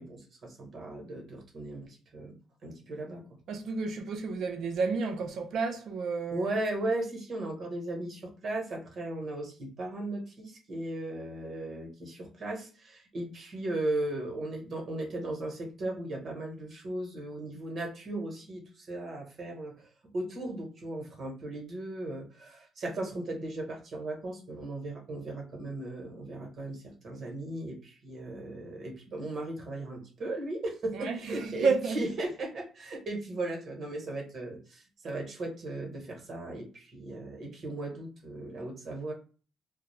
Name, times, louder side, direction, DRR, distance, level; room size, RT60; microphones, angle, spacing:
voice 1, 0.0-2.3 2.6-3.2 6.3-19.7 20.1-39.1, right 2 dB, 55° right, 0.9 m, -37 dB
voice 2, 3.5-6.5 30.9-32.0, right 4 dB, 70° right, 0.5 m, -31 dB
2.3 x 2.0 x 3.0 m
cardioid pair, 90°, 0 cm